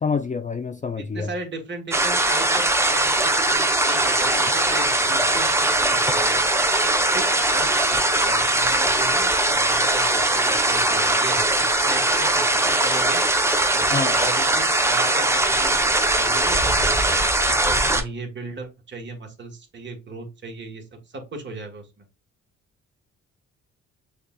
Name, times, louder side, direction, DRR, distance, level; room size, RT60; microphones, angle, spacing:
voice 1, 0.0-1.3 13.9-14.1, left 5 dB, 25° left, 0.5 m, -26 dB
voice 2, 1.0-6.6 7.1-11.5 11.8-13.2 13.7-16.9 17.6-21.9, right 3 dB, 35° right, 1.5 m, -36 dB
sound 1, 1.9-18.0, right 2 dB, 10° right, 0.8 m, -20 dB
6.5 x 2.3 x 2.3 m
cardioid pair, 90°, 30 cm